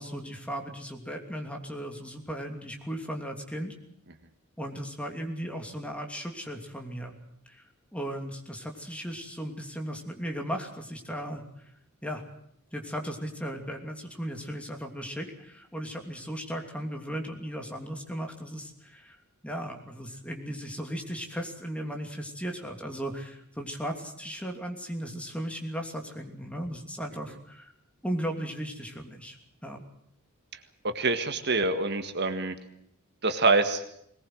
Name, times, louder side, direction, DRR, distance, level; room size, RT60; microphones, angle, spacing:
voice 1, 0.0-3.7 4.6-7.2 7.5-7.6 7.9-11.4 12.0-12.2 12.7-19.2 19.4-27.7 28.0-29.4 29.6-29.8, equal, 5° left, 3 dB, 2.9 m, -36 dB
voice 2, 30.8-32.6 33.2-33.8, right 3 dB, 50° right, 8 dB, 1.7 m, -25 dB
21.0 x 19.5 x 7.9 m, 0.72 s
head